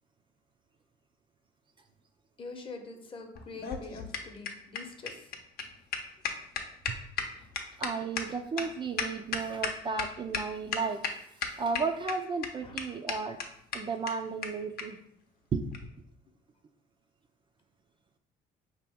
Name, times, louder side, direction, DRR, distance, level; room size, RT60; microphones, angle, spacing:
voice 1, 2.4-5.2 12.6-12.7, left 3 dB, 30° left, 4 dB, 0.8 m, -44 dB
sound 1, 3.3-10.0 10.3-10.4 10.7-11.1 11.4-12.1 12.4-12.5 12.8-12.9 13.1-13.2 13.4-13.5 13.7-13.8 14.1-14.2 14.4-14.5 14.8-14.9 15.7-15.9, left 6 dB, 65° left, 0.7 m, -33 dB
voice 2, 7.8-11.0 11.6-13.4 13.7-15.0 15.5-15.7, right 4 dB, 30° right, 5 dB, 0.4 m, -33 dB
5.1 x 2.9 x 3.4 m, 0.70 s
cardioid pair, 110°, 17 cm